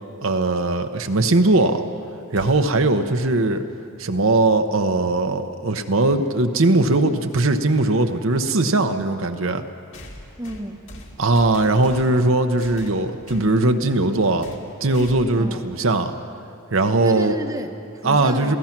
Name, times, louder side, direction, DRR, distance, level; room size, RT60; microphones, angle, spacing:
voice 1, 0.2-1.8 2.3-3.6 4.0-9.6 11.2-14.5 14.8-16.1 16.7-17.3 18.0-18.6, right 2 dB, 65° right, 6 dB, 0.9 m, -19 dB
sound 1, 2.4-2.9 5.0-5.1 6.2-6.3 9.9-12.2 12.6-13.5 14.4-14.7 14.9-15.4, left 1 dB, 60° left, 2.6 m, -41 dB
voice 2, 10.4-10.9 15.4-15.6 17.0-18.6, right 1 dB, 15° right, 5 dB, 0.9 m, -31 dB
28.0 x 16.0 x 6.0 m, 2.5 s
head